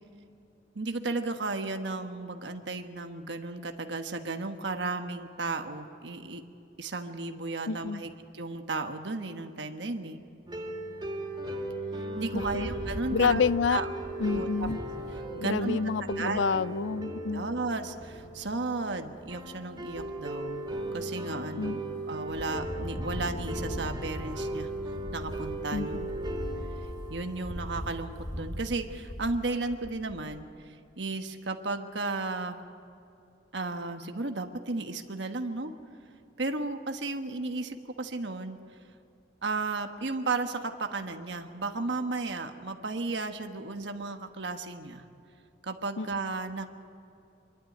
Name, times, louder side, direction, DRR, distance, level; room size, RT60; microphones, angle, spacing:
voice 1, 0.7-6.4 6.8-10.2 12.2-13.4 13.7-13.9 14.3-14.7 15.3-15.8 16.2-16.5 17.3-20.6 20.9-21.8 22.1-24.7 25.1-26.0 27.1-32.6 33.5-35.7 36.4-38.6 39.4-45.0 45.6-46.7, right 3 dB, 70° right, 6 dB, 1.3 m, -34 dB
voice 2, 7.7-8.0 12.3-12.7 13.1-13.8 14.2-14.8 15.4-17.5 21.6-21.8 25.7-26.1 46.0-46.1, left 5 dB, 85° left, 18 dB, 0.4 m, -28 dB
sound 1, 10.5-28.5, right 1 dB, 25° right, 2.8 m, -37 dB
Wind, 12.2-15.3 15.8-15.9 16.1-16.5 17.9-18.5 19.1-19.6 19.9-21.0 21.5-22.0 22.3-30.5, equal, 40° left, 2.0 m, -40 dB
25.5 x 12.0 x 9.4 m, 2.6 s
head